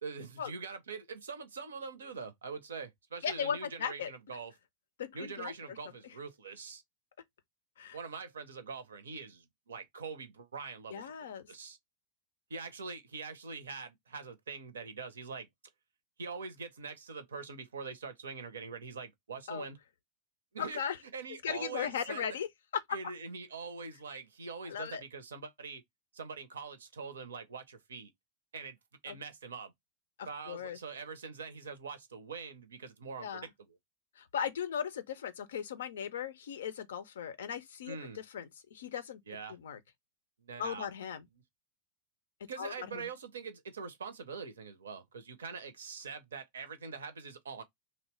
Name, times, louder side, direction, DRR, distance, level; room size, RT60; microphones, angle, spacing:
voice 1, 0.0-4.5 5.1-6.8 7.9-11.8 12.5-15.5 16.2-19.8 20.5-20.8 21.1-22.3 22.9-25.8 26.1-28.1 28.5-28.8 29.0-29.7 30.3-33.8 37.9-38.2 39.3-39.6 40.4-40.9 42.5-47.6, right 5 dB, 70° right, 0.5 m, -43 dB
voice 2, 3.2-4.1 5.0-5.5 7.8-8.0 10.9-11.4 19.5-19.7 20.6-21.0 21.4-22.5 24.7-25.0 29.1-29.2 30.2-30.8 33.2-33.5 34.2-39.2 39.5-39.8 40.6-41.2 42.6-43.1, left 8 dB, 60° left, 0.4 m, -37 dB
2.8 x 2.0 x 3.0 m
figure-of-eight pair, 90°, 0 cm